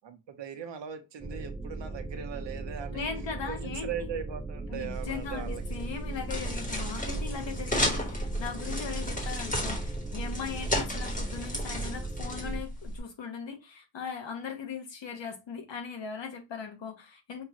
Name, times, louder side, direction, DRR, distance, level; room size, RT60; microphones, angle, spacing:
voice 1, 0.0-3.1 3.5-5.8 6.5-6.6 9.4-9.6, right 8 dB, 70° right, 0.8 m, -39 dB
sound 1, 1.2-12.6, right 3 dB, 5° right, 0.3 m, -38 dB
voice 2, 2.9-4.1 4.7-17.4, left 6 dB, 75° left, 1.1 m, -39 dB
sound 2, 4.9-13.0, equal, 20° left, 1.2 m, -33 dB
5.2 x 2.4 x 2.9 m
wide cardioid pair, 130°, 44 cm